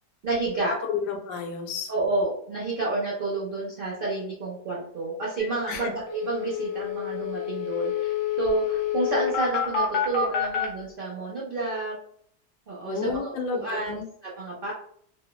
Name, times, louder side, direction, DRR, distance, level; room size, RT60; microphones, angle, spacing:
voice 1, 0.2-0.7 1.9-11.9 12.7-14.7, right 3 dB, 85° right, -5 dB, 0.4 m, -30 dB
voice 2, 0.8-1.9 5.7-5.9 12.8-14.1, left 5 dB, 85° left, 3 dB, 1.2 m, -31 dB
sound 1, 5.4-5.5 5.7-5.8 6.1-10.7, left 8 dB, 65° left, 0.8 m, -28 dB
3.1 x 2.0 x 2.2 m, 0.65 s
omnidirectional pair, 1.8 m